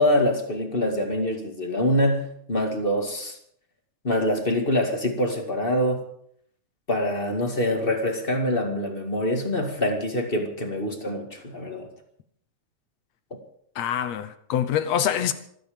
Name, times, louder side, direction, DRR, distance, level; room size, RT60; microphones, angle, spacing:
voice 1, 0.0-3.4 4.0-6.0 6.9-11.9 13.3-13.4, left 1 dB, 20° left, 1.8 m, -25 dB
voice 2, 13.8-15.3, left 10 dB, 70° left, 2.1 m, -25 dB
26.5 x 9.3 x 5.1 m
omnidirectional pair, 3.4 m